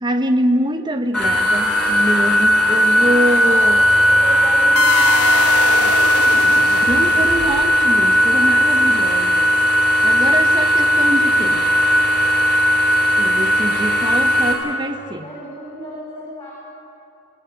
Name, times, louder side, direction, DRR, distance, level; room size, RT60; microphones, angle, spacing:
voice 1, 0.0-3.8 6.8-11.6 13.2-15.3, right 1 dB, 20° right, 6 dB, 0.9 m, -24 dB
sound 1, 1.1-14.5, equal, 5° left, 3.7 m, -16 dB
voice 2, 3.3-5.9 7.0-7.5 8.3-8.6 14.2-16.5, equal, 30° left, -8 dB, 7.3 m, -36 dB
sound 2, 4.8-7.9, left 5 dB, 90° left, 1.1 m, -23 dB
27.0 x 18.0 x 6.5 m, 2.8 s
head